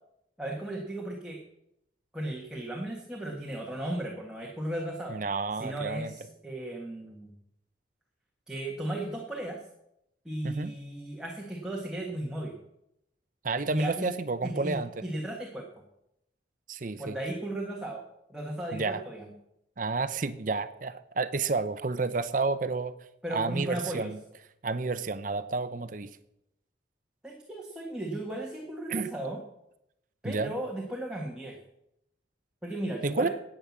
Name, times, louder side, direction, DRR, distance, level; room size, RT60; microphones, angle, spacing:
voice 1, 0.4-1.4 2.1-5.2 5.6-7.3 8.5-9.6 10.2-12.5 13.6-14.1 14.4-15.7 17.0-18.0 18.3-19.3 23.2-24.1 27.2-29.4 30.2-31.6 32.6-33.3, right 1 dB, 5° right, -2 dB, 1.5 m, -35 dB
voice 2, 5.1-6.1 10.4-10.7 13.4-14.9 16.7-17.2 18.7-19.0 19.8-22.9 23.3-24.2 24.6-26.1 28.9-29.1 30.2-30.5 33.0-33.3, right 3 dB, 45° right, 12 dB, 0.6 m, -30 dB
10.5 x 8.9 x 7.2 m, 0.80 s
head